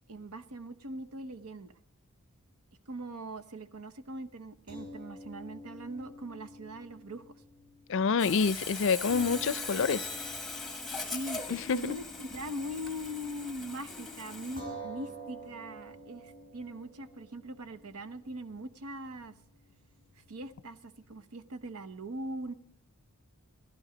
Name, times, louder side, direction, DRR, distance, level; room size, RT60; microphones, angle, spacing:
voice 1, 0.1-1.7 2.9-7.4 11.1-19.3 20.3-22.5, right 1 dB, 85° right, 0.9 m, -41 dB
sound 1, 4.7-13.2 13.5-13.7 14.6-21.1, right 1 dB, 40° right, 5.5 m, -49 dB
voice 2, 7.9-10.1 11.5-12.0, left 5 dB, 55° left, 0.4 m, -27 dB
Sawing, 8.2-14.6, left 3 dB, ahead, 1.1 m, -40 dB
15.5 x 11.5 x 5.1 m
head